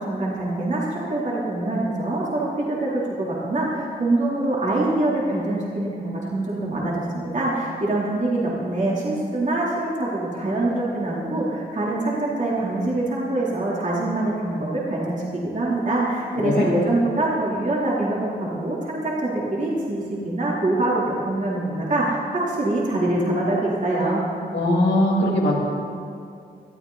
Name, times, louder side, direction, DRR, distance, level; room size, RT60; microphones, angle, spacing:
voice 1, 0.0-24.2, right 2 dB, 45° right, -6 dB, 3.5 m, -24 dB
voice 2, 16.3-16.7 24.5-25.5, left 1 dB, 85° left, -2 dB, 2.8 m, -20 dB
20.5 x 13.5 x 4.1 m, 2.4 s
wide cardioid pair, 100°, 18 cm